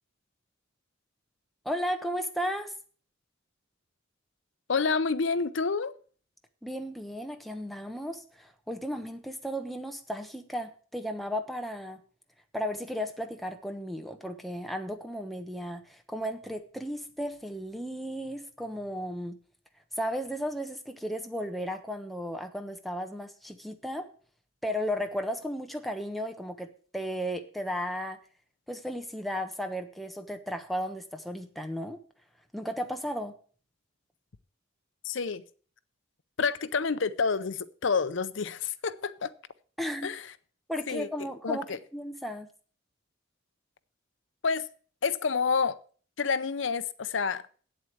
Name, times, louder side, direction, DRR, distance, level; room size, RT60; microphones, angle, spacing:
voice 1, 1.6-2.7 6.6-12.0 12.5-19.4 20.0-24.1 24.6-28.2 28.7-32.0 32.5-33.3 39.8-40.1 40.7-41.7 41.9-42.5, equal, ahead, 1.1 m, -34 dB
voice 2, 4.7-5.9 35.0-35.4 36.4-39.3 40.0-40.3 40.9-41.8 44.4-44.7 45.0-45.8 46.2-47.5, left 5 dB, 65° left, 0.6 m, -29 dB
8.5 x 8.0 x 7.8 m
head